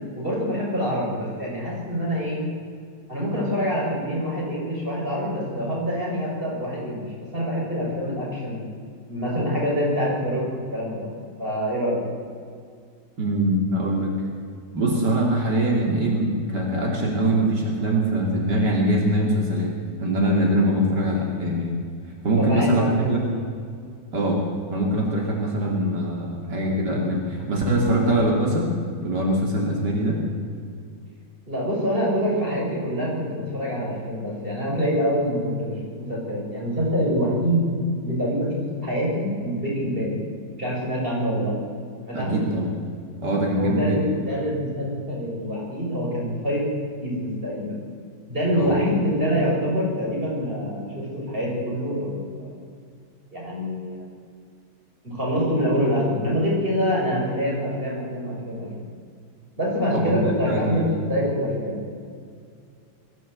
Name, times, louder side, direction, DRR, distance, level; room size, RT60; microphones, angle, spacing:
voice 1, 0.2-2.5 3.1-8.6 9.1-11.1 11.4-12.0 22.4-23.3 31.5-37.7 38.0-40.2 40.6-41.6 42.0-42.4 43.6-46.7 47.0-47.8 48.3-52.6 53.3-54.1 55.0-58.8 59.6-61.9, equal, 30° right, -4 dB, 7.0 m, -25 dB
voice 2, 13.2-14.1 14.7-19.7 20.0-21.8 22.2-23.2 24.1-24.4 24.7-28.7 29.0-30.2 42.1-42.7 43.2-44.1 48.5-48.7 59.9-60.9, right 1 dB, 85° right, -1 dB, 3.5 m, -23 dB
22.0 x 14.5 x 8.2 m, 2.2 s
omnidirectional pair, 1.8 m